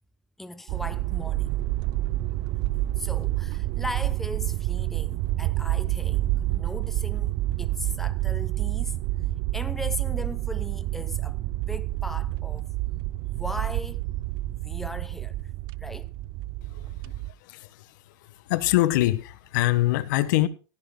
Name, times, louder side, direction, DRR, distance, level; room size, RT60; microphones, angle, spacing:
voice 1, 0.4-1.5 3.0-9.0 9.5-12.7 13.3-14.0 14.5-15.3 15.8-16.1, left 1 dB, ahead, 0.8 m, -38 dB
sound 1, 0.7-17.3, right 16 dB, 40° right, 0.5 m, -28 dB
voice 2, 16.7-17.1 17.4-17.9 18.5-20.5, left 16 dB, 60° left, 1.3 m, -24 dB
16.0 x 15.5 x 2.3 m
hypercardioid pair, 125°, 12 cm